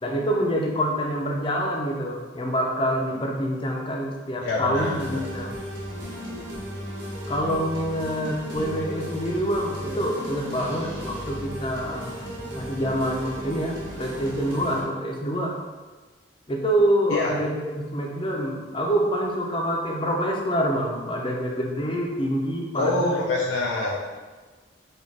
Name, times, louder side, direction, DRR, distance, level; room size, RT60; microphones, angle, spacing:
voice 1, 0.0-5.5 7.3-12.2 12.5-15.5 16.5-23.2, equal, 25° left, 0 dB, 0.6 m, -26 dB
voice 2, 4.4-5.2 17.1-17.3 22.7-24.0, left 2 dB, 85° left, -3 dB, 0.5 m, -25 dB
sound 1, 4.7-14.8, equal, 85° right, 1.2 m, -35 dB
4.9 x 2.5 x 4.1 m, 1.3 s
head